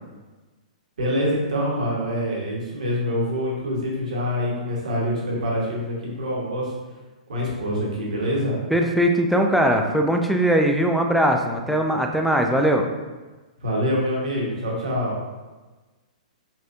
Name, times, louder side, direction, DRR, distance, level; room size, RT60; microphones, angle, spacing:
voice 1, 1.0-6.7 7.3-8.6 13.6-15.2, equal, 70° right, -4 dB, 1.2 m, -25 dB
voice 2, 8.7-12.9, right 1 dB, ahead, 3 dB, 0.3 m, -20 dB
4.1 x 2.6 x 2.5 m, 1.2 s
figure-of-eight pair, 115°, 4 cm